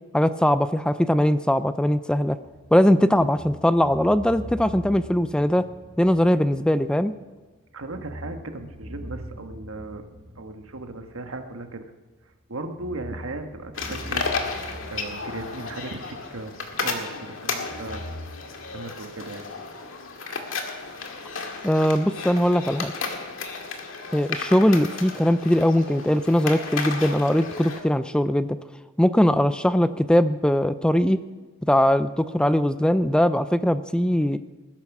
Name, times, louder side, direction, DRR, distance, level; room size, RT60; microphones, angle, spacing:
voice 1, 0.1-2.4 2.7-5.7 6.0-7.1 21.6-22.9 24.1-28.6 29.0-31.2 31.7-34.4, equal, 5° left, 12 dB, 0.4 m, -20 dB
sound 1, 2.4-7.1 7.4-7.5 7.8-12.1 12.6-16.9 17.6-18.3, equal, 25° right, 1.7 m, -42 dB
voice 2, 7.7-10.0 10.4-11.8 12.5-14.3 14.9-16.5 16.8-18.0 18.7-19.5, right 2 dB, 85° right, 6 dB, 1.4 m, -36 dB
sound 2, 13.8-27.8, left 4 dB, 70° left, 2.0 m, -33 dB
20.0 x 10.5 x 6.0 m, 1.2 s
head